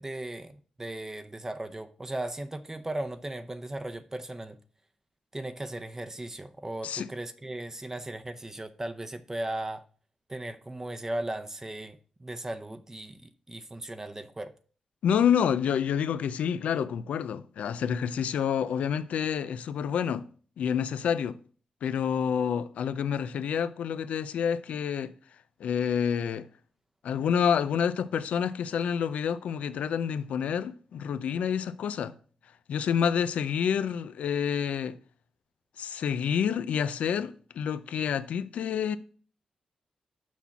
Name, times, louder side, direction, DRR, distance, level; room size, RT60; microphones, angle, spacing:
voice 1, 0.0-4.6 5.3-9.8 10.3-14.5, right 1 dB, 20° right, 0.7 m, -37 dB
voice 2, 15.0-20.3 20.6-21.4 21.8-25.1 25.6-26.5 27.0-32.2 32.7-35.0 35.8-39.0, left 8 dB, 85° left, 0.4 m, -28 dB
6.1 x 5.7 x 5.8 m
cardioid pair, 60°, 2 cm